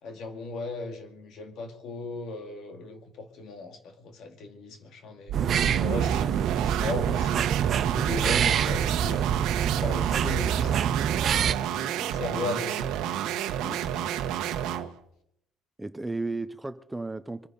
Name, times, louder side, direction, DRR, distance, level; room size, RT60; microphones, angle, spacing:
voice 1, 0.0-5.4 5.8-7.5 7.9-9.2 9.7-11.0 12.1-12.9, left 3 dB, 65° left, 2.3 m, -37 dB
sound 1, 5.3-11.5, right 8 dB, 50° right, 0.6 m, -26 dB
sound 2, 5.3-14.9, right 10 dB, 85° right, 1.1 m, -30 dB
voice 2, 8.1-8.6 11.7-12.2 13.6-13.8 15.8-17.5, right 2 dB, 10° right, 0.6 m, -35 dB
24.0 x 9.8 x 5.3 m
cardioid pair, 120°, 0 cm